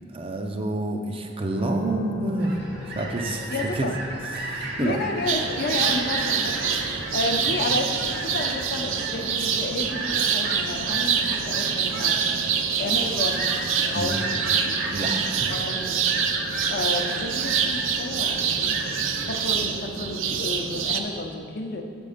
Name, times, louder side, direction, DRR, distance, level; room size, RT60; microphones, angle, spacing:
voice 1, 0.1-2.5 2.9-3.9 4.4-5.1 7.6-7.7 13.9-14.3 14.9-15.5, right 2 dB, 30° right, 3 dB, 0.5 m, -28 dB
sound 1, 1.6-15.6, left 1 dB, 80° left, 0.9 m, -44 dB
sound 2, 2.4-19.5, right 2 dB, 55° right, 1.0 m, -34 dB
voice 2, 3.5-4.0 4.8-12.2 12.8-13.5 13.8-14.9 15.5-16.0 16.7-21.8, left 2 dB, 50° left, 3 dB, 0.6 m, -31 dB
sound 3, 5.3-21.0, right 7 dB, 80° right, 0.5 m, -26 dB
6.8 x 5.3 x 4.9 m, 2.3 s
head